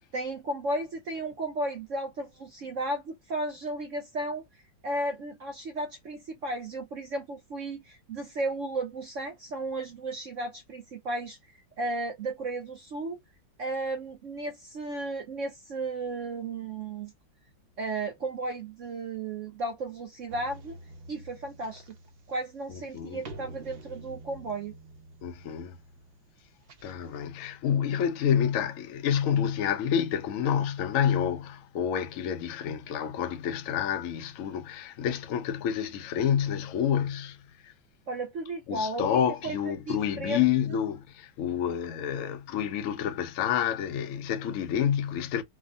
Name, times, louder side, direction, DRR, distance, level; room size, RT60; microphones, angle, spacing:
voice 1, 0.1-11.4 11.8-13.2 13.6-17.1 17.8-20.8 21.1-21.9 22.3-24.7 38.1-40.5 40.7-40.9, right 2 dB, 65° right, 0.8 m, -34 dB
sound 1, 20.3-27.3, right 2 dB, 90° right, 0.5 m, -48 dB
voice 2, 22.7-23.2 25.2-25.8 26.8-37.4 37.6-37.7 38.7-45.4, left 9 dB, 65° left, 0.8 m, -28 dB
3.5 x 2.1 x 2.3 m
omnidirectional pair, 2.0 m